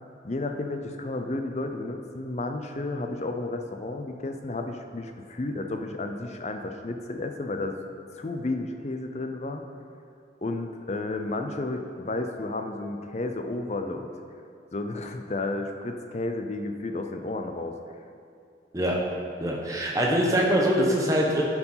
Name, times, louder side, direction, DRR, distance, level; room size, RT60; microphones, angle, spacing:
voice 1, 0.2-7.8 8.1-9.6 10.4-14.1 14.7-17.8, left 2 dB, 40° left, 5 dB, 0.6 m, -32 dB
voice 2, 19.4-21.4, equal, 20° right, -2 dB, 1.1 m, -23 dB
10.5 x 4.7 x 5.7 m, 2.4 s
head